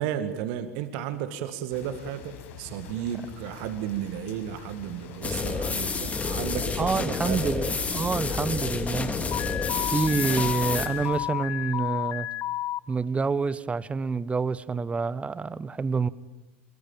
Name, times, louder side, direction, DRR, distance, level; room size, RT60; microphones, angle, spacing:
voice 1, 0.0-7.5 9.5-9.9 10.3-10.4, right 10 dB, 55° right, 10 dB, 2.1 m, -33 dB
sound 1, 1.7-11.3, left 7 dB, 60° left, 5.8 m, -45 dB
sound 2, 5.2-10.9, left 4 dB, 20° left, 3.0 m, -29 dB
voice 2, 6.8-9.1 9.9-12.3 12.9-16.1, right 4 dB, 15° right, 19 dB, 1.1 m, -27 dB
Alarm, 9.3-12.8, left 14 dB, 40° left, 1.0 m, -31 dB
26.5 x 23.5 x 9.0 m, 0.99 s
figure-of-eight pair, 80°, 7 cm